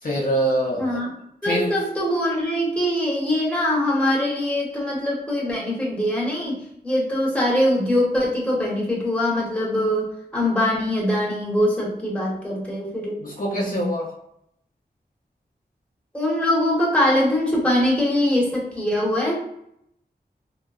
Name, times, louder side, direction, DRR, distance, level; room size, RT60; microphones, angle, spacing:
voice 1, 0.0-1.0 1.4-1.7 13.2-14.1, right 1 dB, 55° left, -4 dB, 0.6 m, -24 dB
voice 2, 0.8-1.1 1.4-13.2 16.1-19.3, left 1 dB, 5° left, -5 dB, 1.0 m, -22 dB
3.6 x 2.0 x 2.3 m, 0.75 s
wide cardioid pair, 70°, 17 cm